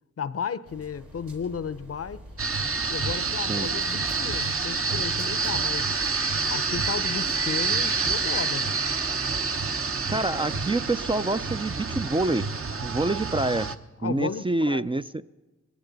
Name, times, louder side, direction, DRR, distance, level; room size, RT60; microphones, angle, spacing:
voice 1, 0.2-2.2 2.9-5.9 6.5-8.7 14.0-14.8, left 6 dB, 50° left, 0.7 m, -34 dB
sound 1, 0.6-8.4, right 1 dB, 90° right, 2.6 m, -45 dB
sound 2, 2.4-13.7, right 4 dB, 50° right, 1.0 m, -28 dB
voice 2, 10.1-12.5 12.8-13.7 14.0-15.2, right 2 dB, 20° right, 0.4 m, -26 dB
21.0 x 16.0 x 4.0 m
cardioid pair, 45°, 29 cm